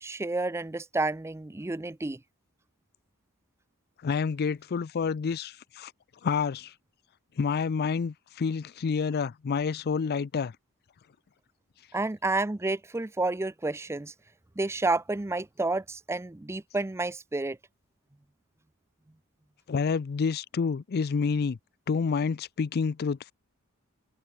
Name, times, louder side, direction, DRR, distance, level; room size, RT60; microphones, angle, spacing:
voice 1, 0.0-2.2 11.9-14.1 14.6-17.6, right 2 dB, 10° right, 0.4 m, -30 dB
voice 2, 4.0-5.9 6.2-6.7 7.4-10.5 19.7-21.6 21.9-23.3, left 5 dB, 45° left, 0.4 m, -28 dB
head